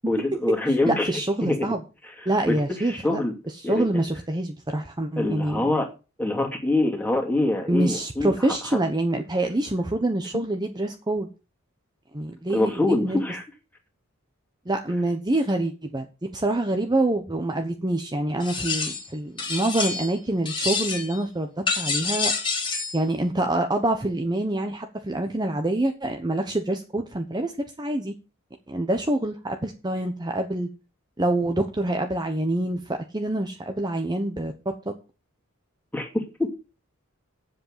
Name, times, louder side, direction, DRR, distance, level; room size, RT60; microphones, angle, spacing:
voice 1, 0.1-1.1 1.4-1.7 2.5-2.6 2.9-3.3 3.6-4.0 5.2-5.9 6.2-8.3 12.5-13.4 35.9-36.5, left 2 dB, 10° left, 2 dB, 2.5 m, -24 dB
voice 2, 0.9-1.8 2.2-3.2 3.6-5.6 7.7-11.3 12.1-13.2 14.7-16.1 16.3-22.3 22.9-27.5 27.8-28.1 28.7-30.7 31.2-34.9, right 1 dB, 20° right, 5 dB, 1.0 m, -26 dB
sound 1, 18.4-19.1 19.4-20.2 20.4-21.2 21.7-23.0, left 4 dB, 25° left, 2.4 m, -27 dB
8.1 x 7.6 x 7.4 m, 0.32 s
head